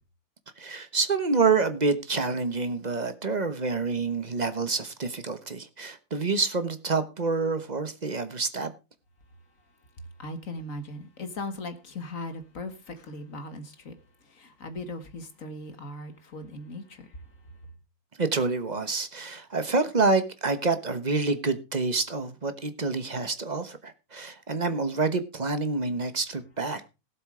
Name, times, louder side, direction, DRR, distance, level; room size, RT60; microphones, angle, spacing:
voice 1, 0.6-8.7 18.2-26.9, right 4 dB, 30° right, 1.3 m, -27 dB
voice 2, 10.2-13.9 14.3-17.1, left 2 dB, 60° left, 2.1 m, -38 dB
17.0 x 7.6 x 4.9 m
omnidirectional pair, 1.6 m